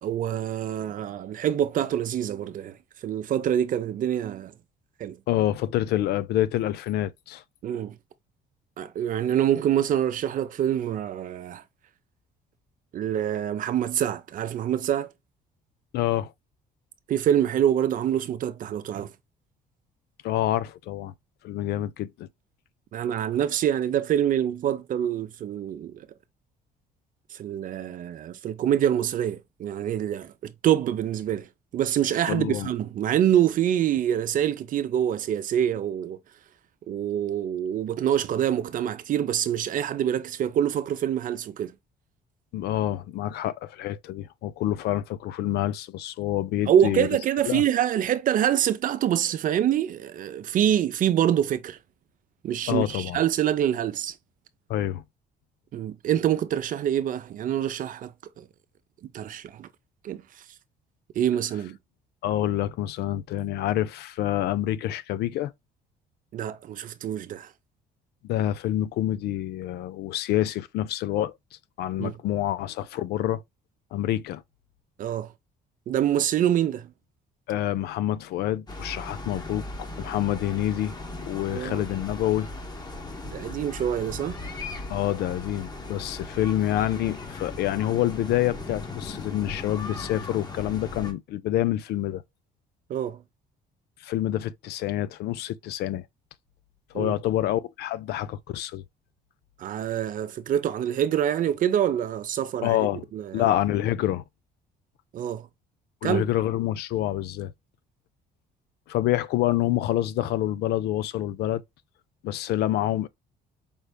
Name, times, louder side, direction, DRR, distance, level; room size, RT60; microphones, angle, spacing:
voice 1, 0.0-2.8 3.0-4.5 5.0-5.2 7.6-8.0 8.8-11.6 12.9-15.1 17.1-19.1 22.9-26.1 27.3-36.2 36.9-41.7 46.7-51.8 52.4-54.1 55.7-58.5 59.1-59.7 60.0-60.2 61.2-61.8 66.3-67.5 72.0-72.2 75.0-75.3 75.9-76.9 81.5-81.8 83.2-84.4 92.9-93.2 96.9-97.1 99.6-102.8 103.1-103.5 105.1-105.5 106.0-106.2, right 10 dB, 50° right, 0.6 m, -26 dB
voice 2, 5.3-7.4 15.9-16.3 20.2-21.1 21.4-22.3 32.3-32.7 42.5-47.1 47.5-47.6 52.7-53.2 54.7-55.0 62.2-65.5 68.2-71.3 71.8-73.4 73.9-74.4 77.5-79.7 80.0-80.9 81.2-82.5 84.9-92.2 94.0-96.0 96.9-98.8 102.6-103.1 103.3-104.2 106.0-107.5 108.9-111.6 112.2-113.1, left 13 dB, 75° left, 0.5 m, -27 dB
sound 1, 78.7-91.1, left 2 dB, 25° left, 1.1 m, -38 dB
5.2 x 3.3 x 2.3 m
cardioid pair, 110°, 17 cm